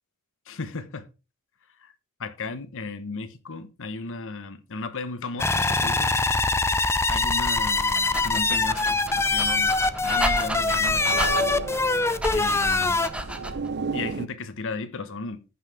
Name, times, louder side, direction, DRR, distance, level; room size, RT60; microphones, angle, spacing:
voice 1, 0.5-1.1 1.7-1.9 2.2-6.1 7.1-11.5 12.3-13.0 13.9-15.4, left 3 dB, 60° left, 1.1 m, -35 dB
sound 1, 5.4-13.1, left 3 dB, 10° left, 0.5 m, -23 dB
Dog, 7.6-13.7, right 1 dB, 5° right, 1.0 m, -33 dB
sound 2, 8.7-14.3, right 5 dB, 50° right, 0.6 m, -35 dB
14.5 x 5.7 x 3.4 m
head